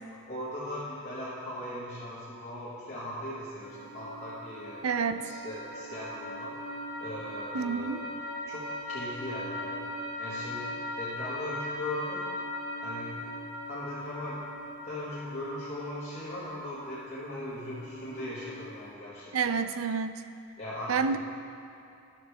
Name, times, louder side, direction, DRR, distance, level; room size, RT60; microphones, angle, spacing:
voice 1, 0.3-4.8 5.2-6.5 7.0-8.0 8.4-9.9 10.2-12.3 12.8-13.3 13.7-14.4 14.8-19.6 20.6-21.2, left 1 dB, 35° left, -10 dB, 1.3 m, -39 dB
sound 1, 3.6-18.9, left 1 dB, 70° left, 1.3 m, -40 dB
voice 2, 4.8-5.3 7.5-8.0 19.3-20.1 20.9-21.2, right 5 dB, 90° right, 11 dB, 0.4 m, -28 dB
12.0 x 6.7 x 3.4 m, 2.6 s
head